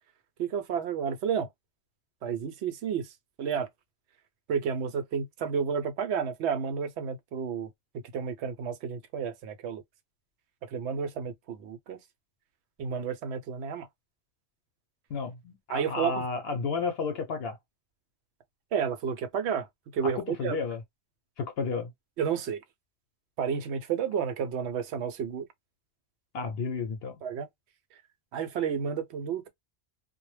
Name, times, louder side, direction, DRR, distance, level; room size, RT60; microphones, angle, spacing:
voice 1, 0.4-1.5 2.2-3.1 3.4-3.7 4.5-7.7 8.1-9.8 10.7-12.0 12.8-13.9 15.7-16.2 18.7-19.7 19.9-20.6 22.2-22.6 23.4-25.5 27.2-27.5 28.3-29.5, right 7 dB, 80° right, 0.8 m, -31 dB
voice 2, 15.1-17.6 20.2-20.8 21.4-21.9 26.3-27.2, left 4 dB, 70° left, 0.8 m, -32 dB
2.2 x 2.0 x 3.1 m
omnidirectional pair, 1.1 m